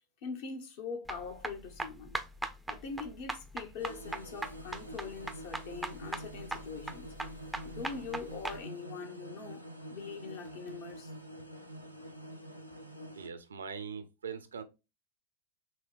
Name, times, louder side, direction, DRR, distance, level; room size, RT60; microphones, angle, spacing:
voice 1, 0.2-2.2 2.7-7.1 7.6-11.1, left 5 dB, 50° left, 1.0 m, -43 dB
sound 1, 1.1-8.6, right 2 dB, 5° right, 0.5 m, -39 dB
sound 2, 3.8-13.3, right 1 dB, 90° left, 0.6 m, -47 dB
voice 2, 13.1-14.6, right 6 dB, 70° right, 0.5 m, -41 dB
6.0 x 2.2 x 2.4 m
figure-of-eight pair, 90°, 0 cm